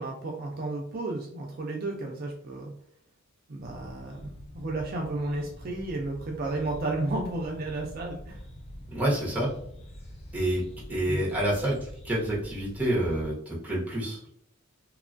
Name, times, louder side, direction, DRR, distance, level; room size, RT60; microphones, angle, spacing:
voice 1, 0.0-2.7 3.5-4.3 4.5-8.4 11.1-11.2, right 2 dB, 45° right, 0 dB, 0.4 m, -33 dB
sound 1, 3.6-13.3, equal, 30° left, 0.4 m, -45 dB
voice 2, 8.9-9.5 10.3-14.2, right 1 dB, 5° right, -5 dB, 0.8 m, -28 dB
3.0 x 2.3 x 2.5 m, 0.69 s
head